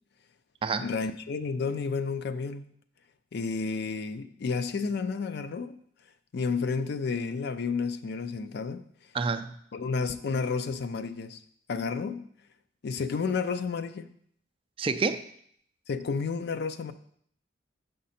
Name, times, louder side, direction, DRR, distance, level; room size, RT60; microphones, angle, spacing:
voice 1, 0.8-2.7 3.3-5.8 6.3-8.8 9.7-11.4 11.7-12.3 12.8-14.1 15.9-16.9, left 4 dB, 60° left, 11 dB, 0.4 m, -31 dB
voice 2, 9.1-9.6 14.8-15.2, right 4 dB, 30° right, 9 dB, 0.3 m, -28 dB
6.5 x 5.2 x 4.2 m, 0.65 s
head